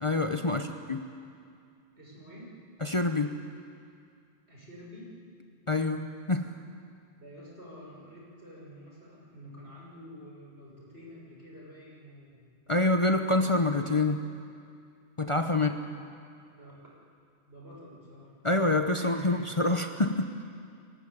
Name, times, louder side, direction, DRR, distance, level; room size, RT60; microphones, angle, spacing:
voice 1, 0.0-0.6 0.9-1.0 2.8-3.4 5.7-6.5 12.7-14.3 15.2-15.7 18.4-20.4, left 2 dB, 30° left, 5 dB, 0.9 m, -26 dB
voice 2, 2.0-2.6 4.5-5.1 7.1-12.5 15.5-16.0 16.5-16.7 17.5-18.4 18.9-19.5, equal, 65° right, -4 dB, 6.6 m, -48 dB
24.0 x 17.5 x 10.0 m, 2.3 s
omnidirectional pair, 1.2 m